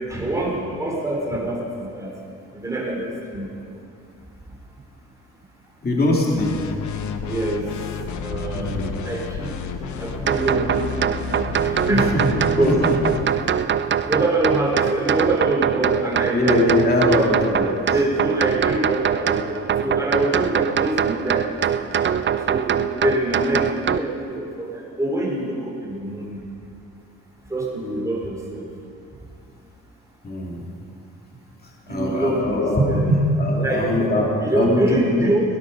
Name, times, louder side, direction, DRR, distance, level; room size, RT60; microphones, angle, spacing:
voice 1, 0.1-2.1 2.6-3.4 7.3-7.6 8.2-9.5 10.0-11.1 11.6-12.1 12.5-12.8 14.1-16.6 17.0-17.3 17.9-21.5 22.5-22.7 23.0-26.4 27.5-28.6 31.9-32.6 32.8-33.1 33.6-33.9 34.4-35.4, right 1 dB, 10° right, -3 dB, 3.9 m, -24 dB
voice 2, 5.8-6.6 8.5-9.0 11.9-12.3 12.6-12.7 16.3-17.9 30.2-30.6 31.9-35.4, left 1 dB, 30° left, -2 dB, 2.6 m, -21 dB
sound 1, 6.4-13.4, left 6 dB, 70° left, 1.1 m, -31 dB
sound 2, 10.3-24.0, right 8 dB, 40° right, 0.5 m, -23 dB
17.5 x 11.5 x 5.4 m, 2.5 s
cardioid pair, 90°, 30 cm